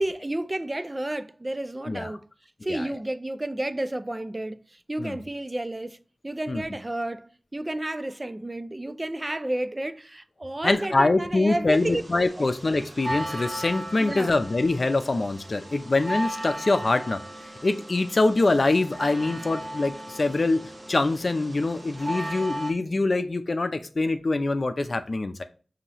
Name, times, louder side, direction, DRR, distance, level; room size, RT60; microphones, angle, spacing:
voice 1, 0.0-2.3 2.6-12.0 12.4-12.5 14.0-14.3, right 1 dB, 30° right, 0.4 m, -31 dB
voice 2, 1.9-2.2 2.7-2.9 5.0-5.2 6.5-6.6 10.6-17.2 17.6-20.6 20.9-25.4, left 2 dB, 55° left, 0.5 m, -24 dB
sound 1, 11.7-22.7, right 1 dB, 45° right, 0.9 m, -37 dB
5.4 x 2.8 x 3.0 m
cardioid pair, 45°, 0 cm